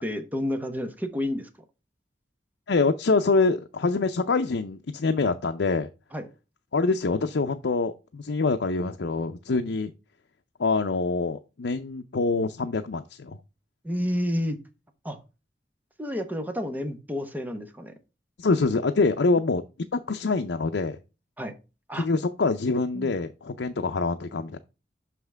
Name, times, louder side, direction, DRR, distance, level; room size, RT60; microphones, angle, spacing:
voice 1, 0.0-1.5 6.1-6.3 13.8-14.6 15.0-15.2 16.0-17.9 21.4-21.5 21.9-22.0 22.9-23.1, left 1 dB, 10° right, 1.1 m, -30 dB
voice 2, 2.7-5.9 6.7-9.9 10.6-13.4 18.4-19.6 19.9-21.0 22.0-24.6, left 3 dB, 80° left, 0.6 m, -25 dB
6.4 x 5.9 x 3.4 m
head